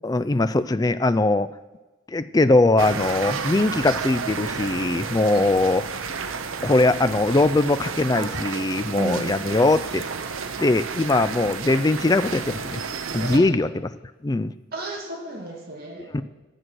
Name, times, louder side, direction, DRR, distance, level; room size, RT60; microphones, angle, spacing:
voice 1, 0.0-1.5 2.1-5.8 6.6-10.1 10.6-12.8 13.1-13.9 14.2-14.5 16.1-16.2, left 2 dB, 20° left, 12 dB, 0.3 m, -21 dB
sound 1, 2.8-13.4, right 5 dB, 85° right, 0.7 m, -31 dB
voice 2, 8.9-9.3 13.3-13.4 14.7-16.2, right 1 dB, 50° right, 0 dB, 2.1 m, -33 dB
12.5 x 7.8 x 6.2 m, 1.2 s
head